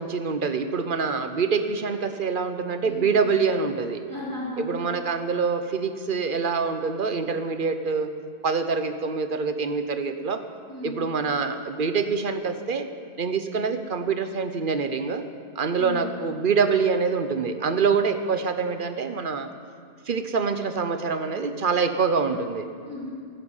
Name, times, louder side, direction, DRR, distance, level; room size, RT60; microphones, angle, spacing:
voice 1, 0.0-4.0 4.6-8.1 8.4-10.4 10.8-12.9 13.2-15.2 15.6-19.5 20.1-22.7, right 5 dB, 50° right, 9 dB, 1.1 m, -25 dB
voice 2, 4.1-4.6 10.7-11.0 15.8-16.0 22.8-23.1, left 2 dB, 15° left, -7 dB, 3.7 m, -34 dB
16.5 x 11.5 x 7.3 m, 2.1 s
omnidirectional pair, 1.2 m